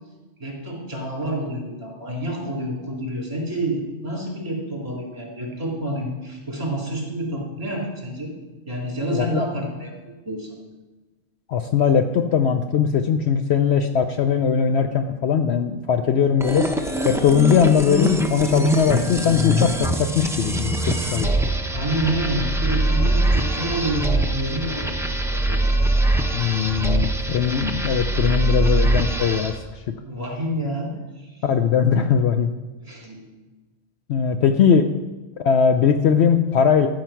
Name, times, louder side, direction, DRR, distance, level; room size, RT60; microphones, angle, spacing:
voice 1, 0.4-8.3 8.7-9.9 10.3-10.5 21.7-25.7 30.0-31.4 32.8-33.3, right 1 dB, 30° right, -2 dB, 3.5 m, -28 dB
voice 2, 9.1-9.5 11.5-16.7 17.0-21.3 26.3-29.5 31.4-32.5 34.1-34.9 35.4-36.9, left 7 dB, 65° left, 7 dB, 0.8 m, -20 dB
sound 1, 16.4-29.6, right 1 dB, 5° right, 0.5 m, -23 dB
13.5 x 7.6 x 5.8 m, 1.2 s
omnidirectional pair, 1.3 m